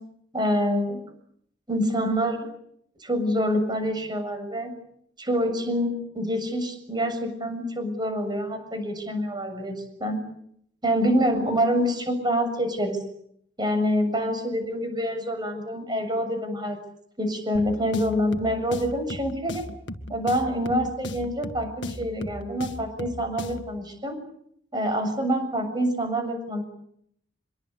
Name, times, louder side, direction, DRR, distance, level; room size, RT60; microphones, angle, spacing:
voice 1, 0.3-1.1 1.7-2.5 3.0-4.8 5.2-10.2 10.8-13.0 13.6-16.8 17.2-19.7 20.1-24.2 24.7-26.6, equal, 25° right, 7 dB, 7.2 m, -26 dB
sound 1, 17.5-23.8, left 1 dB, 70° left, 1.9 m, -37 dB
26.0 x 23.0 x 8.3 m, 0.70 s
head